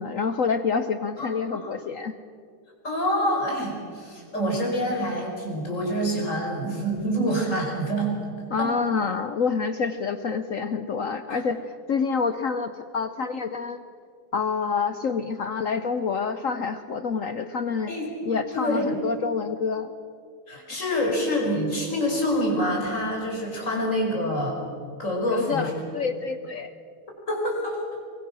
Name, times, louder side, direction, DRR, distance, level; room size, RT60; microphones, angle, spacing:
voice 1, 0.0-2.2 8.5-13.8 14.3-17.9 18.2-19.9 25.3-26.7, left 5 dB, 75° left, 10 dB, 0.7 m, -27 dB
voice 2, 1.2-1.7 2.8-8.2 8.6-8.7 11.3-11.4 17.9-18.1 18.5-18.9 20.5-24.6 25.0-25.8 27.3-27.8, equal, 35° left, -1 dB, 5.3 m, -26 dB
23.5 x 22.0 x 6.1 m, 2.3 s
omnidirectional pair, 2.3 m